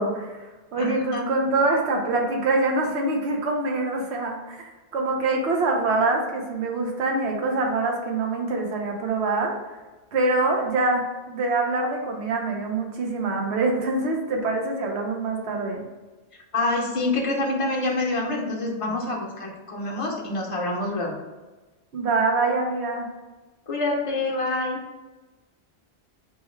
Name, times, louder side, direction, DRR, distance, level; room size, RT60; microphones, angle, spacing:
voice 1, 0.0-9.5 10.1-15.8 21.9-23.1, right 3 dB, 80° right, 1 dB, 1.0 m, -25 dB
voice 2, 0.8-1.3 16.5-21.1 23.7-24.8, left 2 dB, 35° left, -1 dB, 0.7 m, -26 dB
3.6 x 2.2 x 4.3 m, 1.2 s
omnidirectional pair, 1.1 m